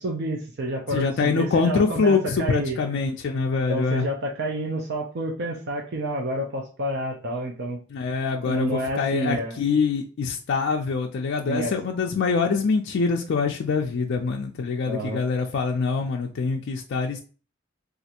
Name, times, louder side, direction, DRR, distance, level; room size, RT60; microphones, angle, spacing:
voice 1, 0.0-2.8 3.7-7.8 8.4-9.5 11.5-11.7 14.8-15.2, right 1 dB, 55° right, 0 dB, 0.5 m, -29 dB
voice 2, 0.9-4.1 7.9-17.2, left 4 dB, 55° left, 2 dB, 0.3 m, -24 dB
3.1 x 2.4 x 2.8 m, 0.37 s
head